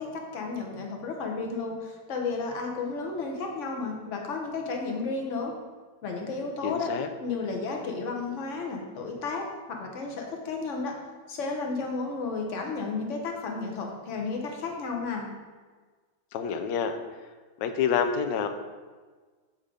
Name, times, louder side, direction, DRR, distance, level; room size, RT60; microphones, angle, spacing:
voice 1, 0.0-5.5 6.0-6.9 7.2-9.5 9.8-10.9 11.3-15.3, left 4 dB, 50° left, 1 dB, 1.2 m, -32 dB
voice 2, 6.6-7.1 16.3-17.0 17.6-18.5, left 7 dB, 85° left, 7 dB, 1.3 m, -27 dB
7.3 x 3.8 x 4.9 m, 1.4 s
omnidirectional pair, 1.9 m